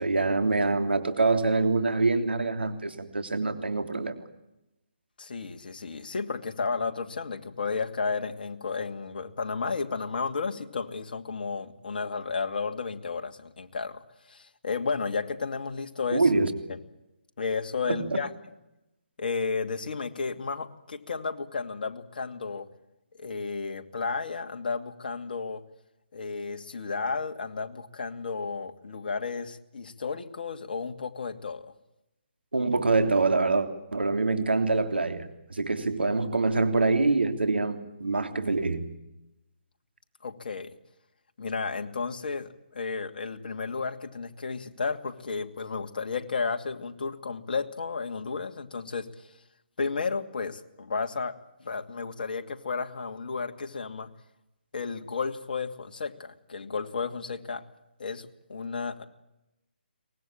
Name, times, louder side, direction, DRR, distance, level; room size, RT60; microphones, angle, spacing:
voice 1, 0.0-4.1 16.1-16.5 17.9-18.2 32.5-38.9, right 3 dB, 80° right, 8 dB, 3.1 m, -25 dB
voice 2, 5.2-14.0 14.3-16.2 16.7-16.8 17.4-18.3 19.2-22.7 23.2-25.6 26.1-31.7 40.2-40.7 41.4-49.1 49.8-54.1 54.7-57.6 58.0-59.0, left 4 dB, 60° left, 5 dB, 2.4 m, -33 dB
23.5 x 19.5 x 8.8 m, 0.91 s
figure-of-eight pair, 145°, 6 cm